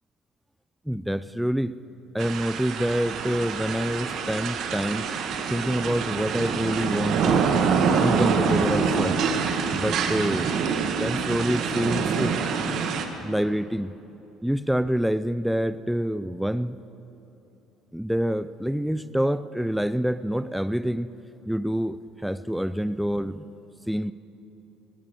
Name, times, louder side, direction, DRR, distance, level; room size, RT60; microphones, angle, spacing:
voice 1, 0.9-1.8 2.1-5.1 5.5-7.5 8.0-9.2 9.7-10.5 10.8-12.3 13.2-13.9 14.4-16.8 17.9-21.1 21.5-23.5 23.9-24.1, equal, ahead, 14 dB, 0.5 m, -27 dB
sound 1, 2.2-13.0, right 5 dB, 60° right, 1.4 m, -25 dB
20.5 x 10.5 x 6.6 m, 3.0 s
hypercardioid pair, 70°, 0 cm